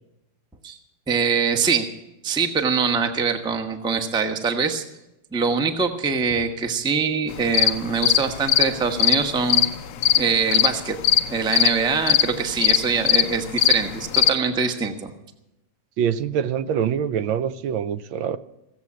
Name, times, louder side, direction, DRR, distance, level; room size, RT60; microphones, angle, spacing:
voice 1, 1.1-1.9 2.2-4.8 5.3-9.6 10.2-11.0 11.3-15.1, right 5 dB, 5° right, 5 dB, 0.7 m, -23 dB
sound 1, 7.3-14.3, left 10 dB, 70° left, 1.3 m, -20 dB
voice 2, 16.0-18.4, right 8 dB, 75° right, 13 dB, 1.5 m, -24 dB
16.5 x 7.8 x 8.5 m, 0.93 s
omnidirectional pair, 2.2 m